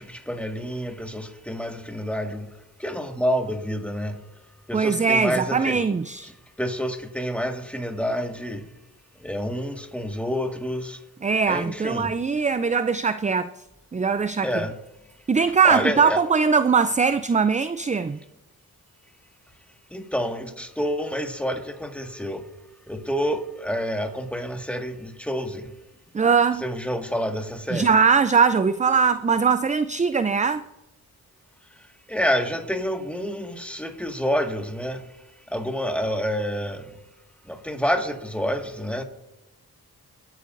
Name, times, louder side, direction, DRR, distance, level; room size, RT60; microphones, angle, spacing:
voice 1, 0.0-2.5 2.8-4.2 4.7-5.8 6.6-8.6 9.2-11.0 11.5-12.1 14.4-14.7 15.6-16.2 19.9-22.4 22.9-25.7 26.6-27.9 32.1-35.0 35.5-36.9 37.5-39.0, equal, 5° left, 1.8 m, -28 dB
voice 2, 4.7-6.3 11.2-13.5 13.9-14.7 15.3-18.2 26.1-26.6 27.7-30.6, right 5 dB, 20° right, 0.4 m, -21 dB
23.0 x 9.1 x 2.6 m
cardioid pair, 45°, 37 cm